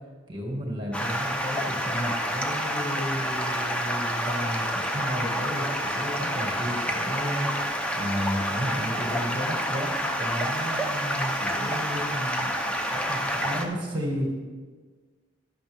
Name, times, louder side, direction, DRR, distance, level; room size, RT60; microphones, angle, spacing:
voice 1, 0.3-7.5 7.9-12.5 12.9-14.3, equal, 25° right, -1 dB, 2.1 m, -32 dB
Stream, 0.9-13.6, equal, 5° left, 0.7 m, -28 dB
15.5 x 11.0 x 3.6 m, 1.5 s
head